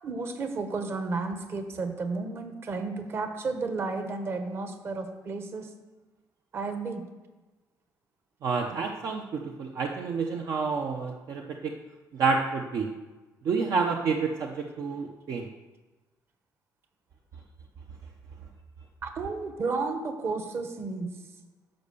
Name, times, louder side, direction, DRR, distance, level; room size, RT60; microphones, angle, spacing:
voice 1, 0.0-5.7 6.5-7.0 19.0-21.1, right 3 dB, 35° right, 6 dB, 1.2 m, -32 dB
voice 2, 8.4-11.7 12.1-12.9 13.4-15.5, right 4 dB, 55° right, 2 dB, 0.8 m, -29 dB
12.0 x 5.5 x 6.9 m, 1.2 s
cardioid pair, 160°, 7 cm